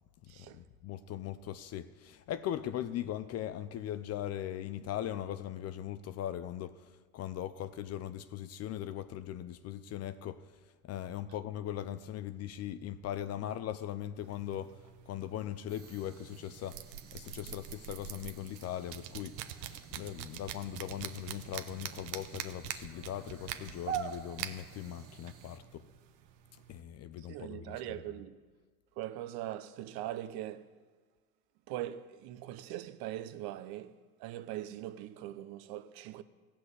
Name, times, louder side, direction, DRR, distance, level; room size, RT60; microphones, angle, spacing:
voice 1, 0.2-10.5 10.8-14.8 15.1-16.8 17.1-25.9 26.7-28.0, left 11 dB, 35° left, 0.5 m, -40 dB
sound 1, 14.2-26.8, right 10 dB, 80° right, 1.1 m, -46 dB
sound 2, 15.7-25.6, right 8 dB, 30° right, 1.4 m, -47 dB
voice 2, 27.3-28.4 29.0-30.7 31.7-33.9 34.2-36.2, right 13 dB, 50° right, 0.9 m, -41 dB
16.5 x 6.1 x 8.0 m
supercardioid pair, 105°, 48 cm